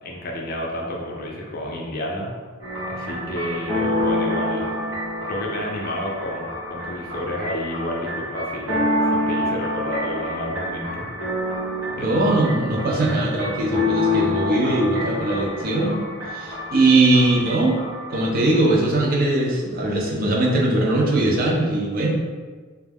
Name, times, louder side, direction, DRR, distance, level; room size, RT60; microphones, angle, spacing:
voice 1, 0.0-2.3 2.8-4.7 5.2-8.8 9.0-11.1 11.9-12.2, left 1 dB, 45° left, -1 dB, 0.4 m, -30 dB
sound 1, 2.6-18.7, left 1 dB, 75° right, 0.9 m, -27 dB
voice 2, 12.0-16.1 16.3-17.8 18.1-22.1, right 2 dB, 45° right, -2 dB, 0.4 m, -20 dB
2.2 x 2.1 x 3.3 m, 1.4 s
head